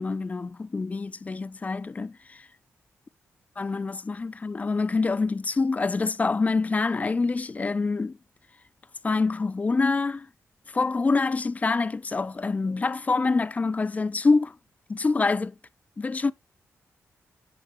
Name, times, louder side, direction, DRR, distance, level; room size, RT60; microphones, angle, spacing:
voice 1, 0.0-2.5 3.6-8.2 9.0-10.3 10.7-14.6 14.9-15.5 16.0-16.3, left 3 dB, 30° left, 0.3 m, -26 dB
9.9 x 3.8 x 3.5 m
cardioid pair, 85°, 5 cm